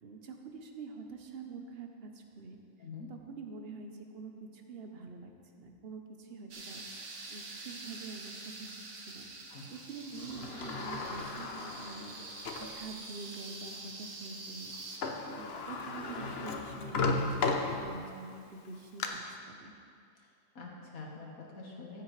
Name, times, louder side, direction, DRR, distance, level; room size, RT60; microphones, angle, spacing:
voice 1, 0.0-2.6 3.1-5.3 5.6-6.8 7.3-9.3 9.7-12.2 12.6-14.7 15.3-19.7, right 4 dB, 50° right, 4 dB, 1.0 m, -46 dB
voice 2, 2.8-3.1 9.5-9.7 20.2-20.3 20.6-22.0, left 4 dB, 90° left, -2 dB, 1.9 m, -46 dB
sound 1, 6.5-15.0, right 3 dB, 75° right, 1.6 m, -46 dB
Sliding door, 10.1-12.8 13.3-13.4 14.7-14.8 15.0-18.2 18.6-19.1, left 3 dB, 55° left, 0.9 m, -35 dB
15.0 x 8.4 x 3.3 m, 2.4 s
omnidirectional pair, 1.4 m